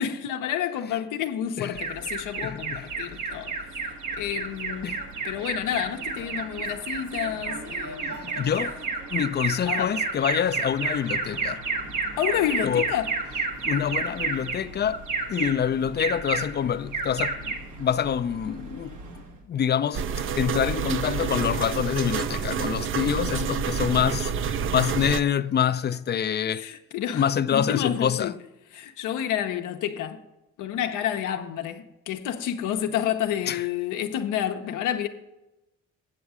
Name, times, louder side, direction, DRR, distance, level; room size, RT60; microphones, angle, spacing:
voice 1, 0.0-3.5 4.2-4.9 5.2-8.3 9.7-9.9 12.2-13.1 26.5-28.3 28.7-30.2 30.6-35.1, left 10 dB, 90° left, 0.8 m, -29 dB
Alarm, 1.7-19.4, right 4 dB, 80° right, 1.5 m, -32 dB
voice 2, 2.4-2.9 4.8-5.0 8.2-8.8 9.1-11.6 12.6-12.9 13.6-15.0 15.3-19.0 19.5-26.7 27.1-28.3 33.5-33.6, left 8 dB, 35° left, 0.4 m, -26 dB
sound 1, 19.9-25.2, right 7 dB, 45° right, 0.5 m, -28 dB
8.4 x 7.2 x 4.8 m
cardioid pair, 90°, 30 cm